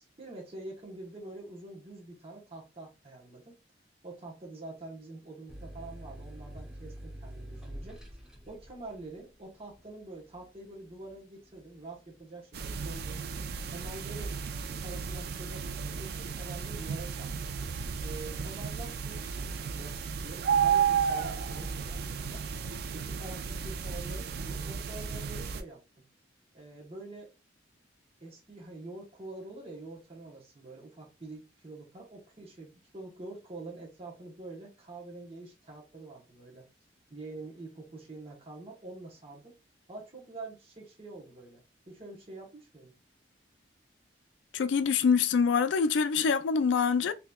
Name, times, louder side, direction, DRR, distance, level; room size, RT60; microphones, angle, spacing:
voice 1, 0.0-3.6 4.0-13.2 13.6-14.3 14.6-17.5 18.0-22.4 22.9-25.8 26.5-27.3 28.2-36.7 37.1-39.5 39.9-42.9, right 2 dB, 30° right, 1.1 m, -46 dB
sound 1, 5.5-12.8 13.2-13.9, equal, 5° right, 0.8 m, -47 dB
sound 2, 12.5-25.6, right 7 dB, 55° right, 0.4 m, -33 dB
voice 2, 44.5-47.1, left 5 dB, 75° left, 0.4 m, -25 dB
3.9 x 2.8 x 2.3 m
head